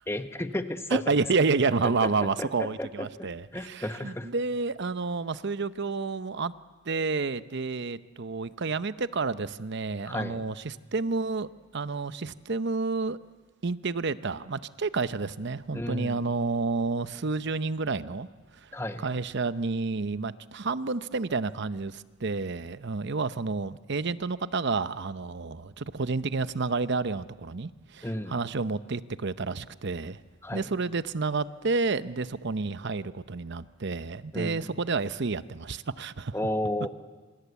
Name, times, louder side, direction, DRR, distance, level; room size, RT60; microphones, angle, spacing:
voice 1, 0.1-1.0 2.4-4.3 10.1-10.4 15.7-16.2 18.7-19.1 28.0-28.4 30.4-30.7 34.3-34.6 36.3-36.9, left 1 dB, 15° left, 8 dB, 1.2 m, -33 dB
voice 2, 0.9-6.5 6.9-13.2 13.6-18.3 18.6-18.7 19.0-30.2 30.5-36.3, right 4 dB, 55° right, 14 dB, 0.8 m, -30 dB
27.0 x 25.5 x 8.3 m, 1.3 s
head